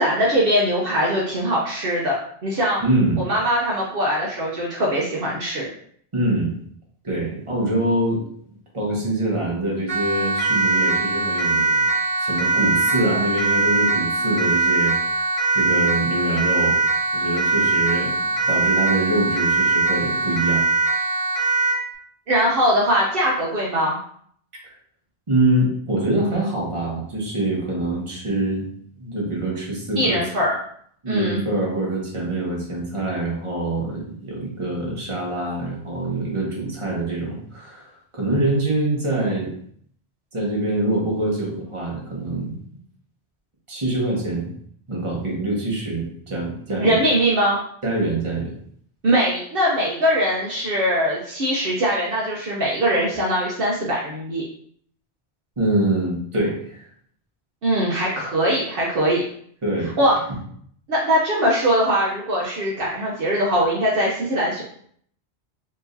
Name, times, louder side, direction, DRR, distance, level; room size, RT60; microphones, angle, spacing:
voice 1, 0.0-2.8 3.2-5.7 22.3-24.0 30.0-30.6 31.1-31.4 46.8-47.6 49.0-54.4 57.6-59.2 60.0-60.1 60.9-64.6, equal, 60° right, -4 dB, 0.9 m, -21 dB
voice 2, 2.8-3.2 6.1-6.5 7.0-11.9 12.2-16.8 17.1-18.1 18.5-20.6 25.3-28.6 29.0-30.2 31.0-39.5 40.3-42.5 43.7-44.5 44.9-47.0 47.8-48.5 55.6-56.9 59.6-59.9 60.3-60.4, right 1 dB, 30° right, -3 dB, 1.2 m, -24 dB
Siren, 9.9-21.9, right 3 dB, 15° left, 1.6 m, -21 dB
4.6 x 3.0 x 2.6 m, 0.62 s
omnidirectional pair, 1.1 m